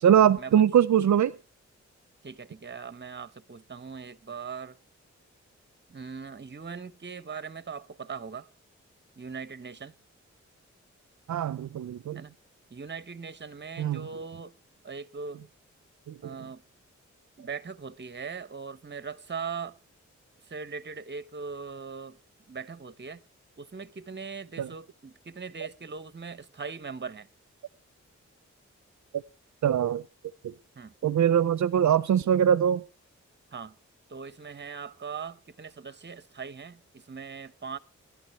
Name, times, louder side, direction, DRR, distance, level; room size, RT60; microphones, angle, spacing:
voice 1, 0.0-1.4 11.3-12.2 13.8-14.1 16.1-16.4 24.6-24.7 29.6-30.0 30.4-30.5 31.0-32.8, right 9 dB, 70° right, 0.6 m, -22 dB
voice 2, 2.2-4.8 5.9-8.5 9.2-9.9 12.1-12.3 12.7-14.5 14.8-15.4 16.2-16.6 17.4-19.7 20.5-22.2 22.5-23.2 23.6-27.3 30.8-30.9 33.5-33.8 34.1-37.8, right 5 dB, 35° right, 1.1 m, -40 dB
21.0 x 12.0 x 3.2 m
cardioid pair, 50°, 30 cm